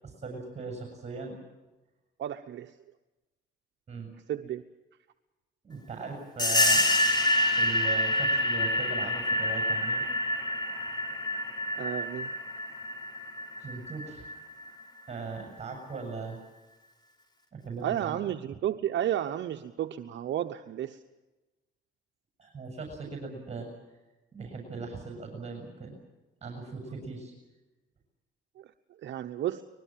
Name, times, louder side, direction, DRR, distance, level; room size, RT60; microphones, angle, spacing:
voice 1, 0.0-1.4 3.9-4.1 5.6-6.9 7.6-10.0 13.6-14.2 15.1-16.4 17.5-18.2 22.4-23.7 24.3-26.0 26.4-27.3, right 4 dB, 35° right, 2 dB, 7.2 m, -39 dB
voice 2, 2.2-2.8 4.3-4.6 11.8-12.3 17.8-21.0 28.6-28.7 29.0-29.6, right 11 dB, 65° right, 6 dB, 1.0 m, -32 dB
sound 1, 6.4-14.7, left 1 dB, 20° left, 4.6 m, -27 dB
23.5 x 21.5 x 7.5 m, 1.1 s
cardioid pair, 90°, 20 cm